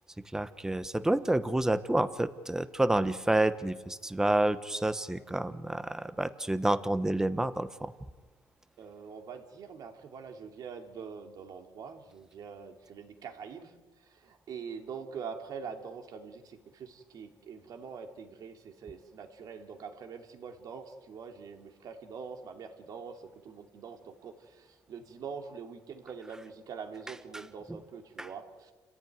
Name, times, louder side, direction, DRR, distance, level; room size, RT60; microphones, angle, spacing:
voice 1, 0.3-7.9 27.3-27.4 27.7-27.8 28.2-28.3, right 1 dB, 5° right, 13 dB, 0.9 m, -29 dB
voice 2, 8.8-13.7 14.0-28.7, right 6 dB, 55° right, 4 dB, 2.8 m, -44 dB
29.0 x 15.5 x 9.3 m, 1.4 s
cardioid pair, 120°, 8 cm